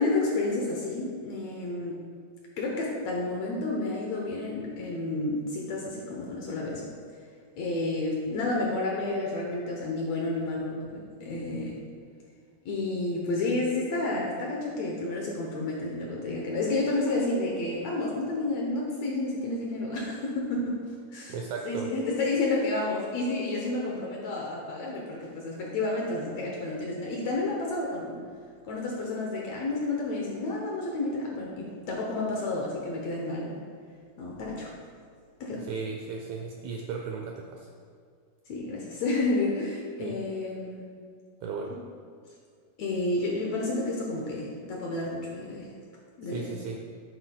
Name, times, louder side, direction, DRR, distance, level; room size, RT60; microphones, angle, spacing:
voice 1, 0.0-2.0 2.6-6.9 7.6-11.8 12.7-20.8 21.1-21.4 21.7-28.2 28.6-33.5 34.2-34.7 35.4-35.6 38.5-40.8 42.8-45.7 46.2-46.5, left 2 dB, 70° left, -2 dB, 1.7 m, -30 dB
voice 2, 21.3-21.9 35.5-37.7 40.0-40.2 41.4-41.8 46.3-46.8, right 5 dB, 80° right, 1 dB, 1.6 m, -36 dB
11.0 x 8.2 x 2.3 m, 2.1 s
omnidirectional pair, 3.9 m